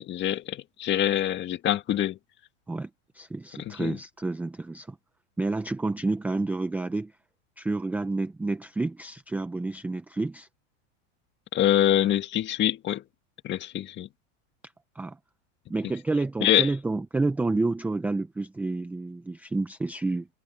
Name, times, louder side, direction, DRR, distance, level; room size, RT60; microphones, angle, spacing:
voice 1, 0.0-2.2 3.7-4.0 11.5-13.0 13.4-14.1 16.4-16.7, left 12 dB, 30° left, 1.9 m, -25 dB
voice 2, 3.1-5.0 5.4-7.1 7.6-10.5 15.0-15.2 15.7-20.3, right 3 dB, 5° right, 0.5 m, -29 dB
supercardioid pair, 145°, 37 cm